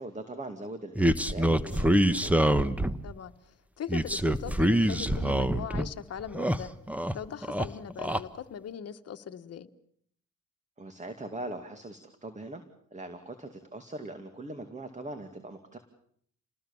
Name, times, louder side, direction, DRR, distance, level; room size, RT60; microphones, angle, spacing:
voice 1, 0.0-2.5 10.8-12.6 12.9-15.8, right 2 dB, 25° right, 8 dB, 2.4 m, -41 dB
sound 1, 1.0-3.1 3.9-5.9 6.2-7.2 7.4-8.2, equal, 5° right, 1.2 m, -25 dB
voice 2, 3.8-6.7 7.1-9.7, left 8 dB, 55° left, 7 dB, 1.5 m, -40 dB
29.0 x 19.5 x 7.2 m, 0.66 s
cardioid pair, 90°, 30 cm